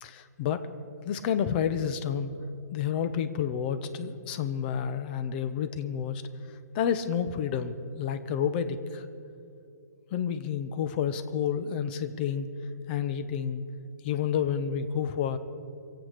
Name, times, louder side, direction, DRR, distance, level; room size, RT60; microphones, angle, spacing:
voice 1, 0.0-0.6 1.0-2.3 2.7-6.2 6.7-9.1 10.1-12.5 12.9-13.6 14.0-15.4, left 8 dB, 35° left, 10 dB, 0.9 m, -30 dB
24.0 x 8.1 x 6.6 m, 2.7 s
figure-of-eight pair, 130°, 9 cm